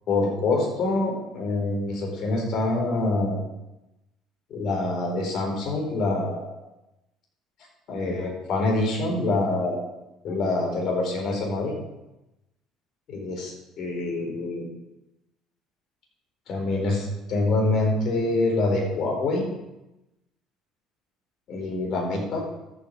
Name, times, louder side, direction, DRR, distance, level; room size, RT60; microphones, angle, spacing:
voice 1, 0.1-3.4 4.5-6.5 7.9-9.8 10.2-11.7 13.1-14.7 16.5-19.5 21.5-22.4, left 2 dB, 60° left, 0 dB, 4.3 m, -25 dB
13.0 x 8.0 x 5.5 m, 0.95 s
hypercardioid pair, 60°, 0 cm